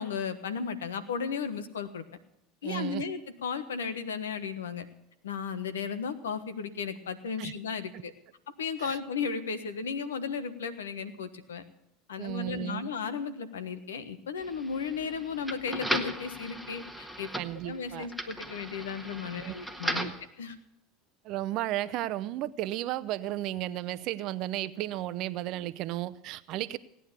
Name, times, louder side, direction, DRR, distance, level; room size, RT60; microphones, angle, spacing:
voice 1, 0.0-2.0 2.6-4.8 5.2-8.1 8.6-11.6 12.1-17.3 17.6-20.1 20.4-20.5, left 6 dB, 85° left, 11 dB, 1.3 m, -35 dB
voice 2, 2.6-3.0 7.4-7.5 8.8-9.0 12.2-12.9 17.3-18.1 19.4-19.6 19.9-20.1 21.2-26.8, right 14 dB, 55° right, 14 dB, 0.7 m, -34 dB
sound 1, 14.4-20.3, right 1 dB, 5° left, 1.6 m, -37 dB
17.0 x 9.9 x 6.8 m, 0.81 s
hypercardioid pair, 80°, 0 cm